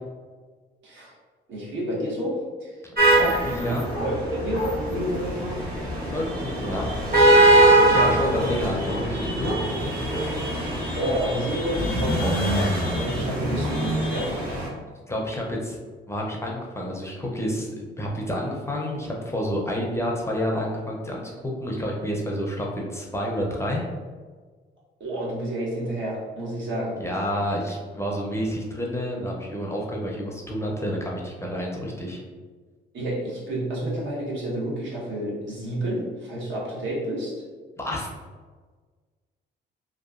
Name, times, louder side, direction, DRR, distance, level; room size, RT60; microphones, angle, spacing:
voice 1, 1.5-2.8 3.5-5.8 10.8-14.3 25.0-27.0 32.9-37.4, right 1 dB, 75° right, -5 dB, 1.1 m, -29 dB
voice 2, 2.8-3.8 6.1-6.8 7.8-9.5 15.1-15.8 16.1-21.3 21.6-23.8 27.0-32.2 37.8-38.1, equal, 15° left, -2 dB, 0.5 m, -29 dB
sound 1, 3.0-14.7, right 1 dB, 50° right, 0.9 m, -22 dB
sound 2, 3.9-4.1 4.5-4.8 7.5-9.1 9.4-10.3 10.7-10.8, equal, 90° right, 1.4 m, -31 dB
2.8 x 2.2 x 2.4 m, 1.4 s
cardioid pair, 90°, 20 cm